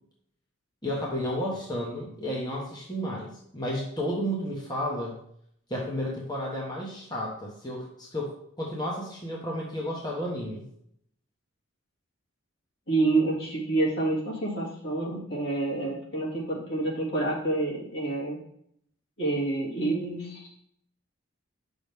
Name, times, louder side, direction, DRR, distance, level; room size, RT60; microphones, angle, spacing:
voice 1, 0.8-5.2 5.7-10.6, equal, 20° left, -3 dB, 1.3 m, -32 dB
voice 2, 12.9-18.4 19.2-20.6, right 2 dB, 65° left, -4 dB, 2.7 m, -28 dB
8.9 x 6.2 x 3.6 m, 0.69 s
head